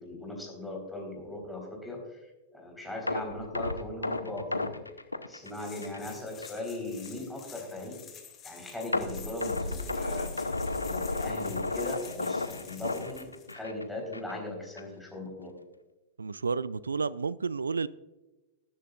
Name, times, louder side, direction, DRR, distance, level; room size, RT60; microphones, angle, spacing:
voice 1, 0.0-2.0 2.5-4.7 5.3-8.0 8.4-10.5 10.8-15.5, left 2 dB, 5° left, 4.1 m, -38 dB
sound 1, 3.1-6.1 6.4-6.6 7.1-7.2 8.9-13.8 14.1-14.3 14.8-14.9, left 2 dB, 85° left, 0.7 m, -33 dB
sound 2, 5.4-13.5, left 7 dB, 25° left, 2.6 m, -49 dB
voice 2, 16.2-17.9, right 4 dB, 80° right, 0.3 m, -31 dB
19.5 x 10.5 x 2.5 m
figure-of-eight pair, 100°, 0 cm